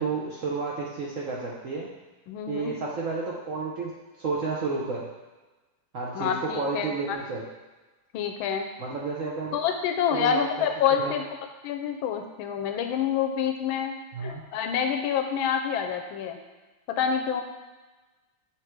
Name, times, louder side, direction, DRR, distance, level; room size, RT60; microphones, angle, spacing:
voice 1, 0.0-1.9 2.5-3.9 4.2-5.0 5.9-7.4 8.8-9.6 10.1-10.7 11.0-11.1 14.1-14.4, right 4 dB, 60° right, -4 dB, 0.8 m, -31 dB
voice 2, 2.3-2.7 6.1-7.2 8.1-8.7 9.5-11.2 11.6-13.9 14.2-16.4 16.9-17.4, left 7 dB, 90° left, 5 dB, 1.5 m, -27 dB
7.3 x 3.3 x 4.5 m, 1.2 s
omnidirectional pair, 2.2 m